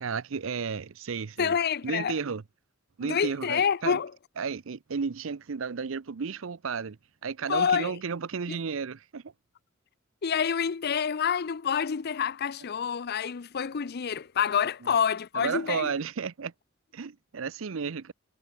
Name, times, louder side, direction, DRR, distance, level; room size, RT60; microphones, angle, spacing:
voice 1, 0.0-1.6 1.8-2.4 3.0-4.0 4.4-7.0 7.2-9.2 15.3-16.5 16.9-18.1, right 5 dB, 70° right, 0.6 m, -33 dB
voice 2, 1.4-2.2 3.0-4.1 7.5-8.0 8.5-8.6 10.2-15.9, left 7 dB, 50° left, 0.5 m, -27 dB
head